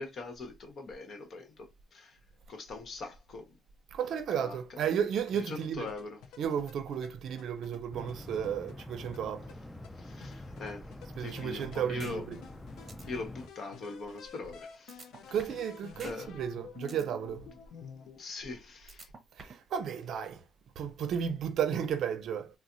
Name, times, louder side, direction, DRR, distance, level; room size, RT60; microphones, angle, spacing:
voice 1, 0.0-2.2 2.5-3.6 4.0-4.8 5.3-6.2 9.9-12.3 13.1-15.0 16.0-16.4 18.2-19.1, left 3 dB, 55° left, 1.0 m, -42 dB
voice 2, 3.9-5.9 6.4-9.5 11.2-12.4 15.3-17.4 19.4-20.4 20.8-22.5, right 8 dB, 70° right, 0.5 m, -33 dB
sound 1, 5.2-18.2, left 6 dB, 85° left, 0.5 m, -51 dB
sound 2, 7.9-13.5, left 1 dB, 10° left, 0.4 m, -46 dB
sound 3, 12.0-12.1 12.5-12.6 12.9-13.0 14.9-15.6 16.0-16.1 16.5-17.0 18.9-19.6, right 4 dB, 40° right, 0.7 m, -47 dB
4.0 x 2.1 x 2.5 m
cardioid pair, 90°, 0 cm